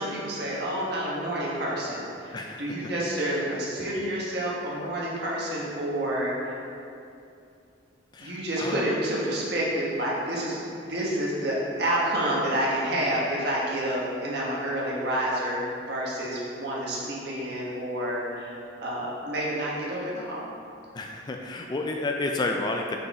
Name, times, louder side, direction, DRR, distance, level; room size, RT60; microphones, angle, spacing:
voice 1, 0.0-6.6 8.2-20.4, right 1 dB, 60° right, -5 dB, 1.3 m, -29 dB
voice 2, 2.3-2.8 8.1-8.8 20.9-23.0, left 2 dB, 25° left, 2 dB, 0.3 m, -31 dB
5.4 x 4.8 x 4.1 m, 2.5 s
head